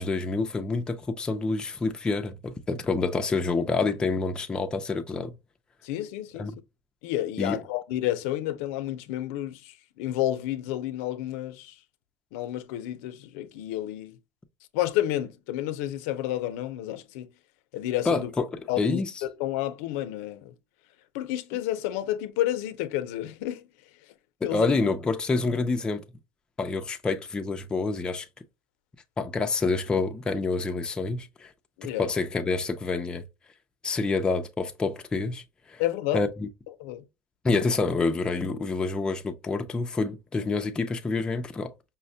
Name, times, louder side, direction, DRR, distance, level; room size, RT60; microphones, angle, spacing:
voice 1, 0.0-5.3 6.4-6.6 7.4-7.6 18.1-19.1 24.5-26.0 26.6-28.3 29.2-31.5 31.8-33.2 33.8-35.4 35.7-35.8 36.1-36.5 37.4-41.7, left 3 dB, 10° left, 0.3 m, -27 dB
voice 2, 5.8-6.5 7.0-11.7 12.3-14.2 14.7-17.3 17.7-18.3 18.7-20.5 21.1-23.6 24.4-24.7 31.8-32.1 35.8-36.3 36.8-37.0 37.6-37.7, left 13 dB, 90° left, 0.5 m, -30 dB
5.5 x 2.1 x 2.7 m
cardioid pair, 170°, 7 cm